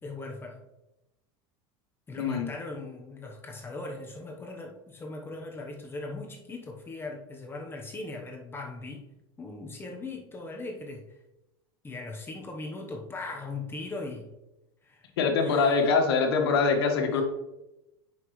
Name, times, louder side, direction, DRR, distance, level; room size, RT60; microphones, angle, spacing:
voice 1, 0.0-0.6 2.1-9.0 9.4-11.1 11.8-14.3 14.8-15.1 15.4-15.8, left 3 dB, 20° left, 2 dB, 1.1 m, -39 dB
voice 2, 2.2-2.5 15.2-17.2, left 4 dB, 90° left, 4 dB, 1.5 m, -24 dB
9.5 x 5.6 x 3.2 m, 0.94 s
supercardioid pair, 120°, 13 cm